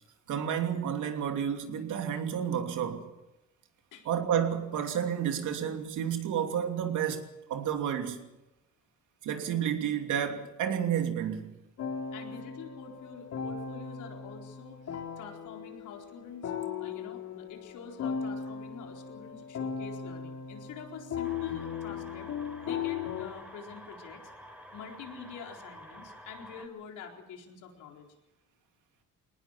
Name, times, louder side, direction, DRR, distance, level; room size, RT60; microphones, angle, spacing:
voice 1, 0.3-3.1 4.0-8.3 9.2-11.5, right 8 dB, 80° right, 3.0 m, -31 dB
sound 1, 11.8-23.3, left 7 dB, 65° left, 3.6 m, -37 dB
voice 2, 12.1-16.5 16.8-22.3 22.6-24.3 24.7-28.1, left 6 dB, 90° left, 4.3 m, -46 dB
sound 2, 21.2-26.7, equal, 5° right, 3.9 m, -49 dB
22.0 x 19.0 x 7.5 m
cardioid pair, 90°, 30 cm